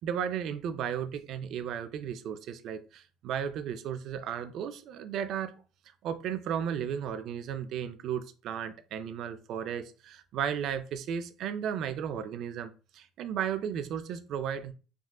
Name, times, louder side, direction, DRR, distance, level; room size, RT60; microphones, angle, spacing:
voice 1, 0.0-5.5 6.0-14.7, right 8 dB, 65° right, 0.3 m, -34 dB
3.6 x 2.4 x 2.2 m
supercardioid pair, 85°, 0 cm